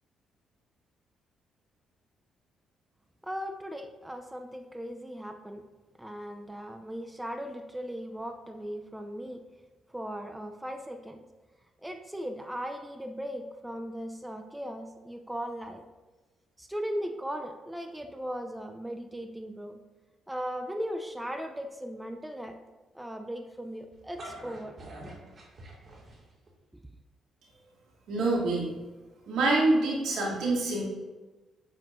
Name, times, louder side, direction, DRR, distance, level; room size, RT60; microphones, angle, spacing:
voice 1, 3.2-5.6 6.0-9.4 9.9-11.2 11.8-15.8 16.6-19.8 20.3-22.6 22.9-24.8, equal, 5° right, 5 dB, 0.6 m, -38 dB
sound 1, 23.9-26.5, right 1 dB, 45° right, 2.2 m, -45 dB
voice 2, 28.1-28.7 29.3-30.8, right 2 dB, 80° right, -5 dB, 2.8 m, -26 dB
9.2 x 7.9 x 2.7 m, 1.2 s
cardioid pair, 90°, 0 cm